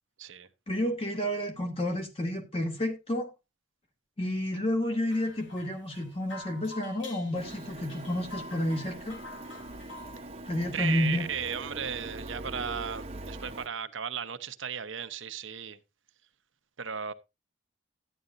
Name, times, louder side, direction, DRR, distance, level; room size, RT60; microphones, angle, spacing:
voice 1, 0.7-3.3 4.2-9.2 10.5-11.3, left 1 dB, 30° left, 2.1 m, -30 dB
sound 1, 5.1-10.2, left 2 dB, 70° left, 3.0 m, -47 dB
Printer, 7.3-13.7, right 2 dB, 30° right, 0.9 m, -42 dB
voice 2, 10.7-15.8 16.8-17.1, right 7 dB, 80° right, 0.9 m, -35 dB
13.0 x 10.0 x 2.6 m
head